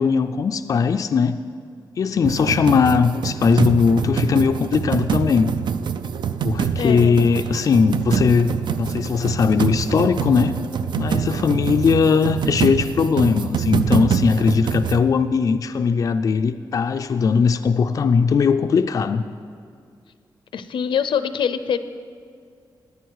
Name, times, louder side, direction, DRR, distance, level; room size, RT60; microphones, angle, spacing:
voice 1, 0.0-1.4 2.0-5.5 6.4-10.6 11.0-19.2, left 5 dB, 45° left, 7 dB, 0.4 m, -19 dB
sound 1, 2.2-15.0, right 7 dB, 65° right, 0.4 m, -25 dB
voice 2, 6.8-7.4 20.5-21.8, left 7 dB, 85° left, 12 dB, 0.6 m, -24 dB
17.5 x 9.9 x 4.7 m, 2.3 s
wide cardioid pair, 165°, 8 cm